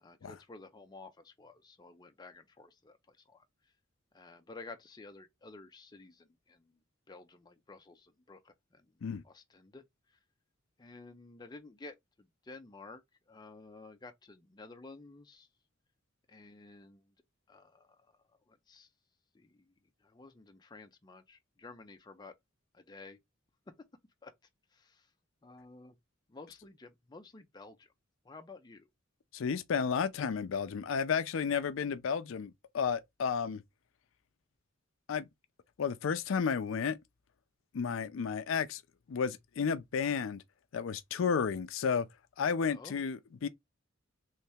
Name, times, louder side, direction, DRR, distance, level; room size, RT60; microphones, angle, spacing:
voice 1, 0.0-3.5 4.1-6.8 7.1-8.9 9.2-9.9 10.8-13.0 13.3-15.5 16.3-17.1 17.5-18.0 18.5-18.9 19.3-19.7 20.0-22.3 22.7-23.2 24.2-24.3 24.7-25.1 25.4-26.0 26.3-27.9 28.2-28.9 42.7-43.0, left 3 dB, 20° left, 0.5 m, -52 dB
voice 2, 29.3-33.6 35.1-35.2 35.8-37.0 37.7-38.8 39.1-40.4 40.7-42.1 42.4-43.5, left 6 dB, 75° left, 0.4 m, -32 dB
3.2 x 2.8 x 3.3 m
head